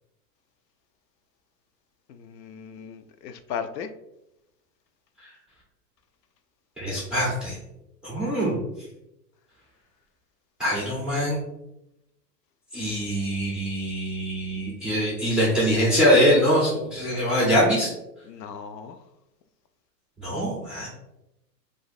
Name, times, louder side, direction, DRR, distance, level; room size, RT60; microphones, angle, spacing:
voice 1, 2.1-3.9 18.3-19.0, left 7 dB, 75° left, 0.5 m, -36 dB
voice 2, 6.8-7.6 8.0-8.6 10.6-11.4 12.7-17.9 20.2-20.9, equal, ahead, 0.4 m, -23 dB
2.5 x 2.5 x 3.8 m
hypercardioid pair, 115°, 50 cm